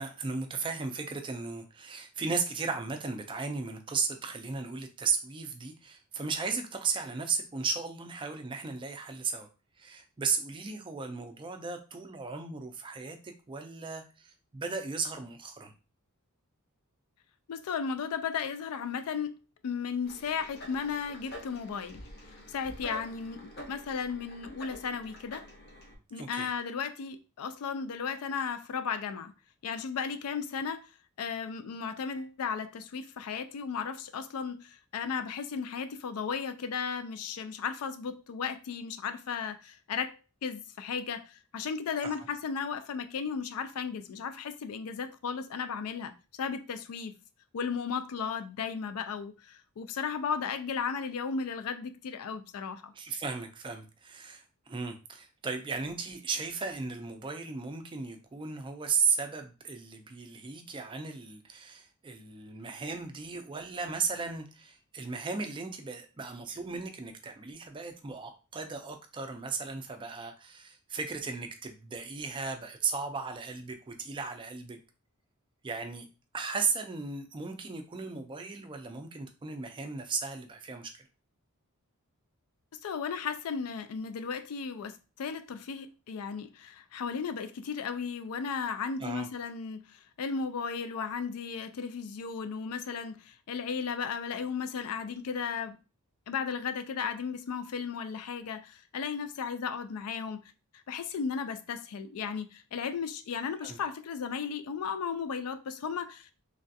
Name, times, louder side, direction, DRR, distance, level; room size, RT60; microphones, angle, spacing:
voice 1, 0.0-9.5 9.8-15.7 26.1-26.5 42.0-42.1 52.9-74.8 75.6-76.1 76.3-81.1 89.0-89.3 103.6-103.8, right 5 dB, 20° right, 0.3 m, -35 dB
voice 2, 17.5-19.3 19.6-22.0 22.5-25.5 26.1-29.3 29.6-30.8 31.2-47.1 47.5-52.9 82.8-95.8 96.3-100.4 100.7-106.3, left 6 dB, 80° left, 0.4 m, -35 dB
sound 1, 20.0-26.0, left 1 dB, 45° left, 0.7 m, -47 dB
3.2 x 2.3 x 2.6 m
head